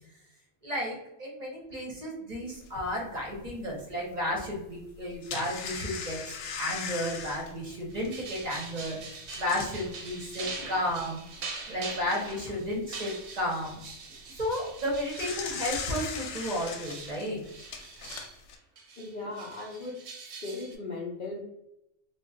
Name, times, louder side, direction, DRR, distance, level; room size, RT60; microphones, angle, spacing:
voice 1, 0.6-11.2 11.7-13.8 14.3-17.4, left 1 dB, 40° right, -3 dB, 0.8 m, -33 dB
sound 1, 2.7-2.8 3.3-3.4 4.9-9.8 10.5-10.6 11.0-11.1 11.7-12.6 14.8-18.6, left 5 dB, 85° left, 0.9 m, -39 dB
sound 2, 7.9-18.4 18.8-20.8, right 4 dB, 65° right, 0.8 m, -43 dB
voice 2, 19.0-21.4, left 2 dB, 60° left, -3 dB, 0.5 m, -38 dB
2.4 x 2.3 x 3.7 m, 0.84 s
omnidirectional pair, 1.3 m